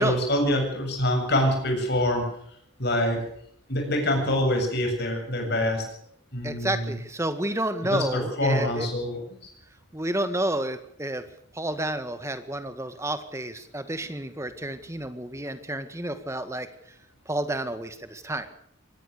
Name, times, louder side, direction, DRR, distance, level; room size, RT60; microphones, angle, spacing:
voice 1, 0.0-2.2 2.8-3.2 3.7-5.8 6.3-6.9 7.8-9.2, left 1 dB, 50° left, 3 dB, 7.9 m, -25 dB
voice 2, 6.4-8.9 9.9-11.2 11.6-16.7 17.3-18.5, right 1 dB, 15° right, 9 dB, 1.8 m, -30 dB
24.5 x 19.0 x 6.8 m, 0.65 s
head